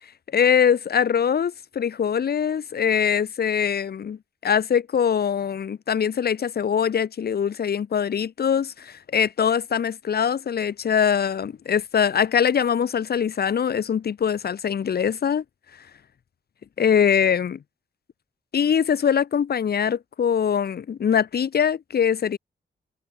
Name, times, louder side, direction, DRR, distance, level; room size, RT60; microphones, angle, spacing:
voice 1, 0.3-4.2 4.4-15.4 16.8-17.6 18.5-22.4, left 7 dB, 60° left, 2.0 m, -22 dB
wide cardioid pair, 145°, 18 cm